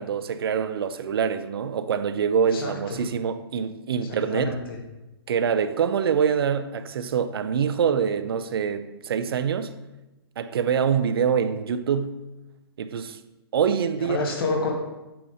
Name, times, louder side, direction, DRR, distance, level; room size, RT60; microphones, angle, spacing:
voice 1, 0.0-4.6 5.3-9.7 10.4-12.2 12.8-13.2 13.5-14.2, right 7 dB, 65° right, 0.6 m, -25 dB
voice 2, 2.5-3.0 4.3-4.8 14.0-14.7, left 3 dB, 60° left, 2.1 m, -28 dB
8.7 x 4.2 x 5.0 m
hypercardioid pair, 145°, 13 cm